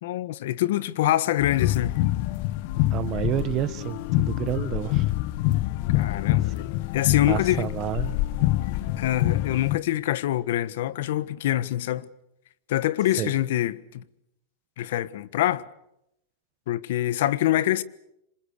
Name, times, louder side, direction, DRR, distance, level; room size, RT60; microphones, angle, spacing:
voice 1, 0.0-2.0 5.9-7.7 9.0-12.1 12.7-14.0 14.8-15.6 16.7-17.8, left 13 dB, 65° left, 1.4 m, -25 dB
sound 1, 1.4-9.8, left 16 dB, 50° left, 1.1 m, -26 dB
voice 2, 2.9-5.1 7.3-8.2 13.2-13.3, right 13 dB, 30° right, 1.6 m, -29 dB
27.5 x 26.0 x 6.7 m
supercardioid pair, 155°, 0 cm